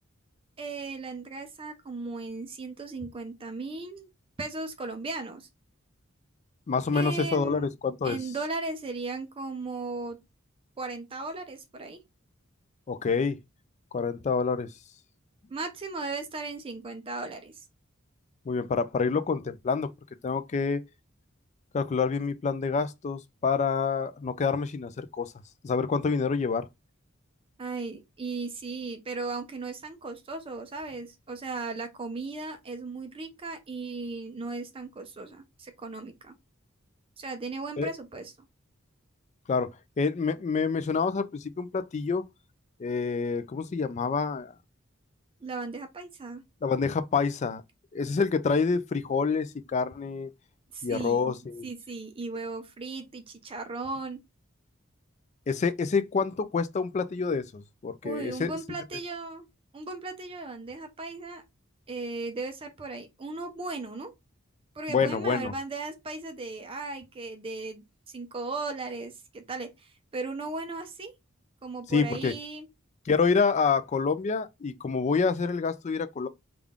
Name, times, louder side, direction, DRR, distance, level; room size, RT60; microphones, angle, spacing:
voice 1, 0.6-4.1 4.4-5.5 6.9-7.7 8.0-10.2 10.8-12.0 15.5-17.6 27.6-36.3 37.2-38.3 45.4-46.4 50.7-51.3 51.6-54.2 58.0-59.5 59.7-61.4 61.9-64.1 64.8-71.1 71.6-72.7, right 3 dB, 25° right, 0.5 m, -36 dB
voice 2, 6.7-8.2 12.9-13.4 13.9-14.7 18.5-19.9 20.2-20.8 21.7-25.3 25.6-26.7 37.8-37.9 39.5-39.7 40.0-42.2 42.8-44.5 46.6-47.6 47.9-50.3 50.8-51.7 55.5-58.8 64.9-65.5 71.9-72.3 73.1-76.3, left 5 dB, 35° left, 0.3 m, -27 dB
3.6 x 2.4 x 3.4 m
head